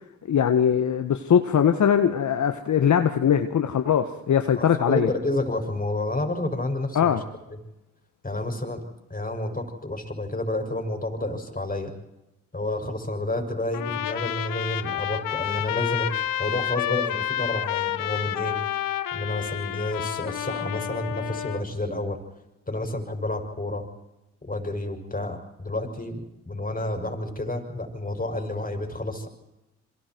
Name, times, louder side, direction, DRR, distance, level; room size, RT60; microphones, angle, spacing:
voice 1, 0.3-5.1 6.9-7.2, left 8 dB, 60° left, 7 dB, 1.6 m, -21 dB
voice 2, 4.6-7.2 7.5-7.6 8.2-8.8 9.1-11.9 12.5-18.6 19.1-22.2 22.7-23.9 24.4-29.3, left 2 dB, 25° left, 4 dB, 6.7 m, -30 dB
Trumpet, 13.7-21.6, left 11 dB, 75° left, 1.3 m, -29 dB
28.0 x 23.5 x 4.7 m, 0.94 s
supercardioid pair, 50°, 33 cm